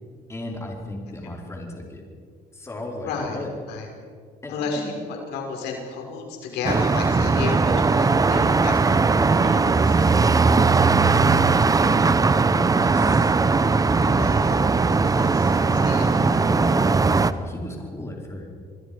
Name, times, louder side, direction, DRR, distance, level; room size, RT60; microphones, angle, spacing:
voice 1, 0.3-2.0 2.5-3.5 4.4-4.9 10.7-11.5 12.2-13.3 14.0-14.4 16.0-17.0 17.4-18.5, left 1 dB, 15° left, 0 dB, 4.5 m, -35 dB
voice 2, 3.0-3.9 4.5-10.2 14.2-14.6 14.9-16.1, left 4 dB, 90° left, 1 dB, 5.8 m, -33 dB
sound 1, 6.6-17.3, right 4 dB, 20° right, 0.9 m, -19 dB
28.0 x 21.5 x 5.3 m, 2.1 s
cardioid pair, 110°, 17 cm